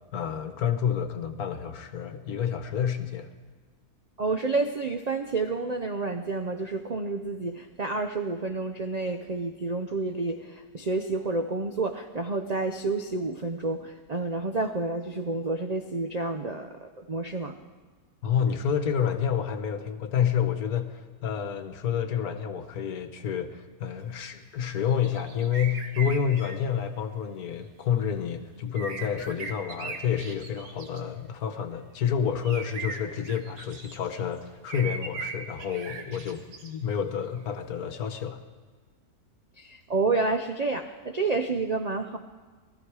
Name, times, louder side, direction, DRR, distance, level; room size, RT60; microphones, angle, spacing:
voice 1, 0.1-3.3 18.2-38.4, left 8 dB, 70° left, 1.5 m, -29 dB
voice 2, 4.2-17.6 39.6-42.2, right 3 dB, 65° right, 0.4 m, -29 dB
sound 1, 24.9-26.6 28.7-31.0 32.4-34.2 34.7-36.7, right 4 dB, 90° right, 1.8 m, -39 dB
19.5 x 14.0 x 4.8 m
omnidirectional pair, 1.7 m